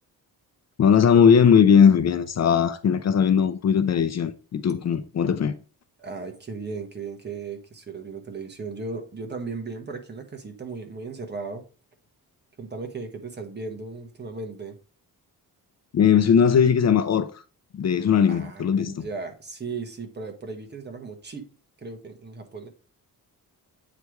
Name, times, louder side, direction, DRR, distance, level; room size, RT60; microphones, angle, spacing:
voice 1, 0.8-5.5 15.9-17.4 17.7-19.1, left 7 dB, 45° left, 0.5 m, -19 dB
voice 2, 6.0-11.6 12.6-14.7 18.3-21.5 21.8-22.7, right 4 dB, 30° right, 1.2 m, -36 dB
8.3 x 3.3 x 4.6 m
wide cardioid pair, 165°, 36 cm